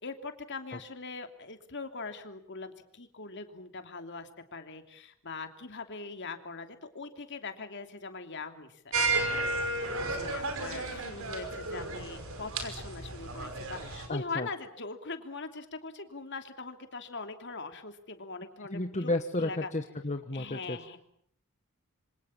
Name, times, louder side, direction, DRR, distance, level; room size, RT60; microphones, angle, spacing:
voice 1, 0.0-9.1 10.0-19.1 19.4-19.7 20.3-21.0, left 4 dB, 55° left, 7 dB, 2.9 m, -42 dB
sound 1, 8.9-14.1, right 2 dB, 65° right, 5.5 m, -33 dB
voice 2, 14.1-14.5 18.7-20.8, left 2 dB, 35° left, 6 dB, 1.2 m, -32 dB
27.0 x 26.0 x 7.4 m, 0.65 s
head